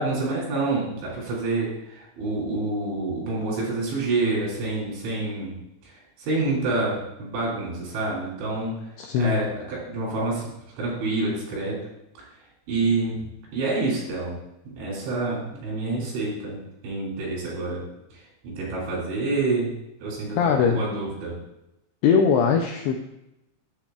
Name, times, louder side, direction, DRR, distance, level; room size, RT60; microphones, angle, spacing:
voice 1, 0.0-5.6 5.8-8.9 9.2-11.8 12.7-13.2 13.5-14.4 14.8-16.6 16.8-17.9 18.1-19.7 20.0-21.4, right 3 dB, 80° right, -4 dB, 5.8 m, -27 dB
voice 2, 9.0-9.4 20.3-20.8 22.0-23.0, left 6 dB, 85° left, 3 dB, 2.3 m, -21 dB
10.0 x 8.3 x 2.4 m, 0.88 s
omnidirectional pair, 5.3 m